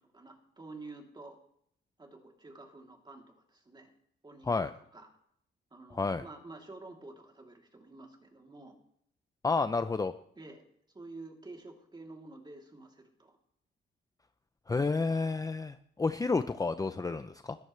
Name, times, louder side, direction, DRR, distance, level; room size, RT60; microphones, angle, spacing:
voice 1, 0.0-1.4 2.0-3.9 4.2-5.1 5.7-8.8 10.3-10.6 10.9-13.4, right 2 dB, 20° right, 1 dB, 3.3 m, -50 dB
voice 2, 9.4-10.1 14.7-17.6, left 4 dB, 15° left, 10 dB, 0.6 m, -30 dB
20.5 x 14.0 x 3.3 m, 0.69 s
cardioid pair, 90°, 20 cm